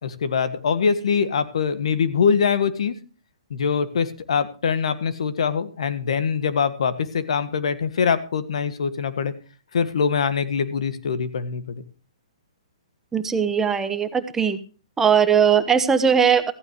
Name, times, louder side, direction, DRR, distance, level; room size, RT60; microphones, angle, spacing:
voice 1, 0.0-2.9 3.5-9.3 9.7-11.8, left 6 dB, 65° left, 12 dB, 1.6 m, -23 dB
voice 2, 13.1-14.6 15.0-16.5, right 7 dB, 10° right, 10 dB, 1.2 m, -19 dB
15.0 x 15.0 x 3.0 m, 0.36 s
hypercardioid pair, 130°, 3 cm